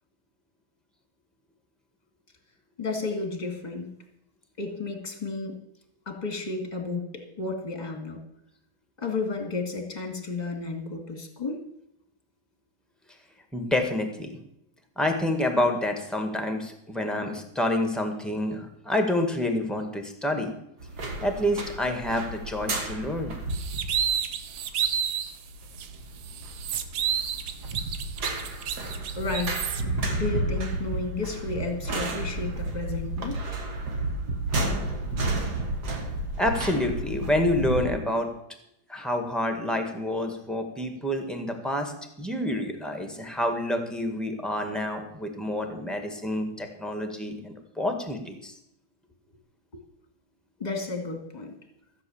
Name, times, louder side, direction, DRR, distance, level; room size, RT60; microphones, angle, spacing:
voice 1, 2.8-3.9 4.6-5.6 6.1-8.2 9.0-11.6 29.2-29.6 30.1-33.4 50.6-51.6, left 3 dB, 20° left, 4 dB, 2.1 m, -32 dB
voice 2, 13.5-14.4 15.0-20.5 21.2-23.3 36.4-38.3 38.9-41.9 42.2-48.5, left 1 dB, ahead, 5 dB, 1.5 m, -28 dB
sound 1, 20.8-37.8, right 2 dB, 55° right, 2.1 m, -32 dB
sound 2, 23.5-25.3 25.8-25.9 26.2-29.8, right 9 dB, 80° right, 1.7 m, -30 dB
14.5 x 7.7 x 7.2 m, 0.78 s
omnidirectional pair, 2.3 m